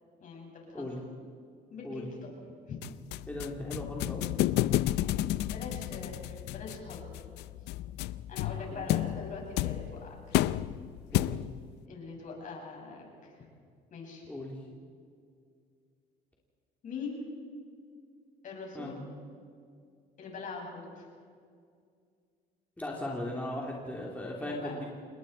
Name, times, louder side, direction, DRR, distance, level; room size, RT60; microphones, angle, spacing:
voice 1, 0.2-0.9 1.7-2.3 2.7-2.8 4.9-7.2 8.3-10.1 11.9-13.3 13.9-14.2 16.8-17.2 18.4-19.0 20.2-21.1 24.4-24.8, left 4 dB, 50° left, 0 dB, 6.5 m, -42 dB
sound 1, 2.8-11.7, left 14 dB, 85° left, 0.5 m, -32 dB
voice 2, 3.3-4.2 8.8-8.9 11.1-11.3 14.3-14.5 18.7-18.9 22.8-24.9, left 1 dB, 10° left, -3 dB, 3.3 m, -37 dB
28.0 x 20.5 x 4.5 m, 2.2 s
cardioid pair, 110°, 17 cm